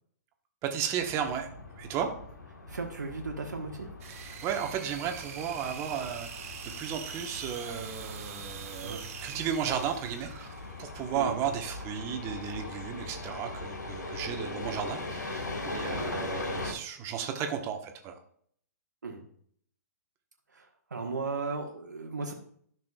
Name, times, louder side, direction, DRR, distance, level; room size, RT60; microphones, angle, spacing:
voice 1, 0.6-1.5 1.8-2.1 4.1-10.5 10.8-18.2, right 8 dB, 30° right, 5 dB, 1.2 m, -34 dB
sound 1, 1.0-16.7, left 2 dB, 85° left, 1.5 m, -40 dB
voice 2, 2.7-3.9 8.8-9.0 11.1-11.4 16.0-16.2 19.0-19.2 20.5-22.3, right 4 dB, 85° right, 2 dB, 1.4 m, -36 dB
sound 2, 4.0-11.0, right 7 dB, 55° right, 1.3 m, -44 dB
12.0 x 6.1 x 2.4 m, 0.62 s
hypercardioid pair, 125°, 9 cm